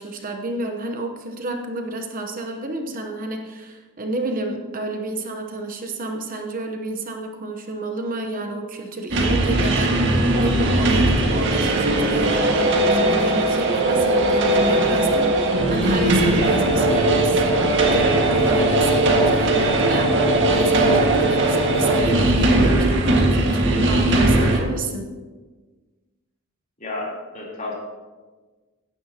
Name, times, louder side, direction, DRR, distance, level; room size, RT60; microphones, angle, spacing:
voice 1, 0.0-25.1, right 2 dB, 40° right, 3 dB, 1.0 m, -30 dB
sound 1, 9.1-24.6, right 2 dB, 60° right, 1.8 m, -19 dB
voice 2, 26.8-27.7, left 2 dB, 35° left, -5 dB, 3.5 m, -31 dB
16.5 x 9.9 x 2.9 m, 1.3 s
head